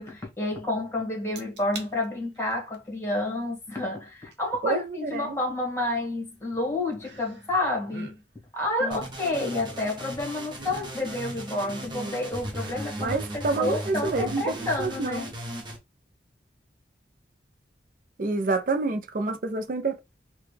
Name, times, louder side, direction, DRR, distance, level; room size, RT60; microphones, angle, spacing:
voice 1, 0.0-8.2 8.5-15.3, left 2 dB, 15° left, 1.4 m, -30 dB
sound 1, 1.4-1.9 2.4-2.8 4.3-4.4 7.0-7.6 7.8-8.2 9.0-10.0 10.6-12.1 12.5-13.0 13.4-13.5, right 3 dB, 75° right, 0.9 m, -44 dB
voice 2, 4.6-5.4 8.8-9.0 11.9-12.2 13.0-15.2 18.2-20.0, right 3 dB, 50° right, 0.5 m, -28 dB
sound 2, 8.9-15.8, right 1 dB, 25° right, 0.9 m, -37 dB
4.0 x 2.2 x 3.3 m
head